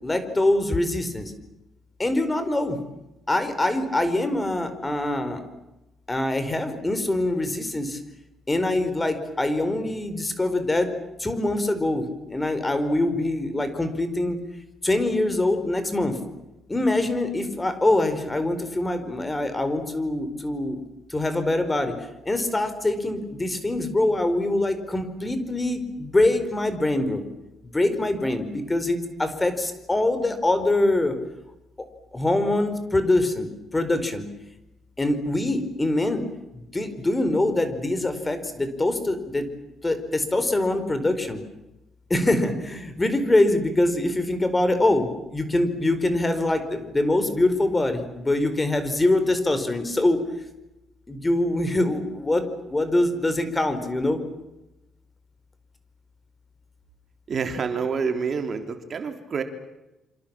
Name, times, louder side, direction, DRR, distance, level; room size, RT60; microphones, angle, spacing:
voice 1, 0.0-1.3 2.0-2.8 3.3-5.4 6.1-8.0 8.5-10.9 11.2-14.4 14.8-16.2 16.7-20.8 21.1-21.9 22.2-27.2 27.7-31.2 32.1-34.3 35.0-36.2 36.5-39.5 39.8-41.4 42.1-50.2 51.1-54.2, left 2 dB, 20° left, 10 dB, 4.5 m, -24 dB
voice 2, 57.3-59.4, right 5 dB, 50° right, 6 dB, 3.4 m, -27 dB
27.5 x 26.5 x 7.5 m, 0.95 s
cardioid pair, 90°, 0 cm